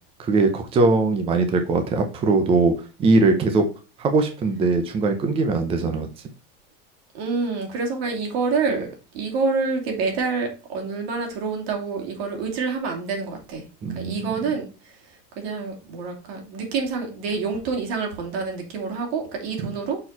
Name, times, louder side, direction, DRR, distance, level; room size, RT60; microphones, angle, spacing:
voice 1, 0.2-2.7 3.0-3.7 4.0-6.1 13.8-14.5 19.6-19.7, right 3 dB, 20° right, 6 dB, 0.7 m, -21 dB
voice 2, 7.1-8.9 9.1-13.6 13.9-14.6 15.4-20.0, right 4 dB, 80° right, 2 dB, 3.0 m, -27 dB
6.4 x 4.5 x 4.3 m, 0.33 s
cardioid pair, 175°, 30 cm